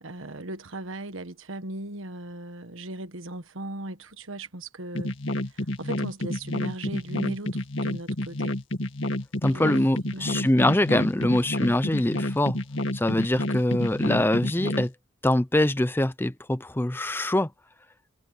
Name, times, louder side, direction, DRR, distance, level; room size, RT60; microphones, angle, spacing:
voice 1, 0.0-5.1 5.4-8.5 9.5-9.7 10.1-10.5 11.2-11.4, right 1 dB, 85° right, 1.4 m, -38 dB
sound 1, 4.9-14.9, left 1 dB, 70° left, 2.0 m, -29 dB
voice 2, 9.4-12.6 12.9-14.9 15.2-17.5, left 1 dB, 10° left, 0.6 m, -23 dB
head